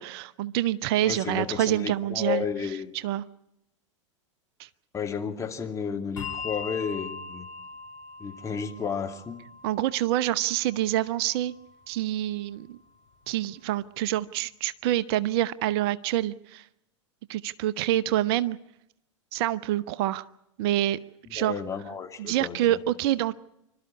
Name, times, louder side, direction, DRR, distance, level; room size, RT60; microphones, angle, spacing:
voice 1, 0.0-2.4 2.9-3.2 4.6-4.7 9.6-11.5 11.9-12.8 13.3-16.7 17.3-18.6 19.3-20.2 20.6-21.0 21.3-21.6 22.2-23.3, right 13 dB, 55° right, 16 dB, 0.8 m, -26 dB
voice 2, 1.0-2.9 4.9-7.5 8.2-9.4 21.4-22.8, left 6 dB, 20° left, 4 dB, 2.6 m, -32 dB
Bell, 6.2-13.0, left 5 dB, 75° left, 3.8 m, -42 dB
27.0 x 13.0 x 9.8 m, 0.83 s
hypercardioid pair, 95°, 16 cm